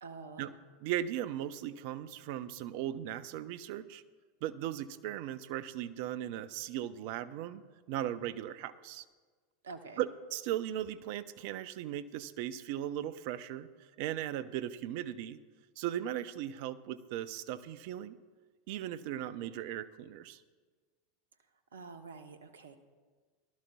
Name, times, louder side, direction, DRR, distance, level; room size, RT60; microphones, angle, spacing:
voice 1, 0.0-0.5 9.6-10.0 21.7-22.8, right 4 dB, 75° right, 9 dB, 0.9 m, -47 dB
voice 2, 0.8-4.0 4.4-7.6 7.9-9.0 10.0-13.7 14.0-15.4 15.8-18.2 18.7-20.4, right 11 dB, 55° right, 14 dB, 0.5 m, -37 dB
18.5 x 12.0 x 2.3 m, 1.4 s
figure-of-eight pair, 85°, 0 cm